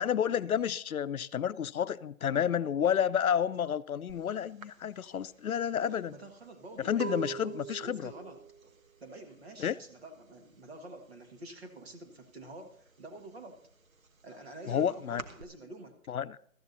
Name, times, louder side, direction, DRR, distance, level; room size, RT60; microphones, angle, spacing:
voice 1, 0.0-6.1 6.8-8.1 9.6-9.8 14.7-15.2 16.1-16.4, left 8 dB, 85° left, 0.6 m, -30 dB
sound 1, 4.1-4.3 4.6-10.3 10.5-11.1 11.3-12.5 12.9-15.4, right 7 dB, 70° right, 1.3 m, -44 dB
voice 2, 5.7-8.4 9.0-13.6 14.2-16.0, right 2 dB, 45° right, 1.8 m, -48 dB
17.5 x 13.5 x 2.7 m
hypercardioid pair, 165°, 42 cm